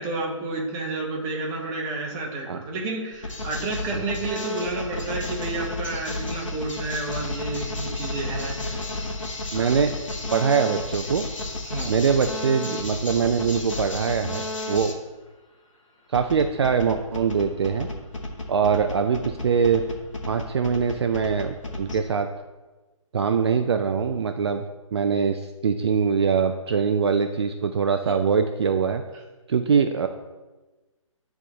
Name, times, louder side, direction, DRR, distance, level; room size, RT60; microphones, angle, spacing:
voice 1, 0.0-8.8 9.5-9.7 11.6-11.9, right 3 dB, 15° right, 0 dB, 0.9 m, -31 dB
sound 1, 3.1-14.9 16.1-22.0, left 2 dB, 65° left, 1.3 m, -32 dB
voice 2, 9.5-9.9 10.3-11.2 11.9-14.9 16.1-17.9 18.5-19.8 20.3-22.3 23.1-24.6 24.9-29.0 29.5-30.1, right 6 dB, 50° right, 6 dB, 0.4 m, -23 dB
9.6 x 3.5 x 3.9 m, 1.2 s
figure-of-eight pair, 140°, 17 cm